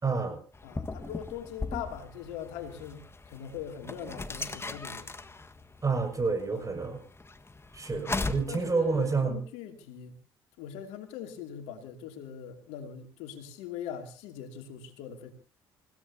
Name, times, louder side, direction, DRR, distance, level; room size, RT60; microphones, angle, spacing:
voice 1, 0.0-0.4 5.8-7.0 7.7-9.4, right 4 dB, 30° right, 6 dB, 6.2 m, -28 dB
sound 1, 0.5-9.2, left 3 dB, 20° left, 1.6 m, -39 dB
voice 2, 0.6-5.1 6.5-6.7 7.9-8.0 8.5-10.2 10.6-15.3, left 8 dB, 75° left, 5 dB, 2.7 m, -41 dB
28.5 x 17.0 x 2.8 m, 0.35 s
hypercardioid pair, 50°, 11 cm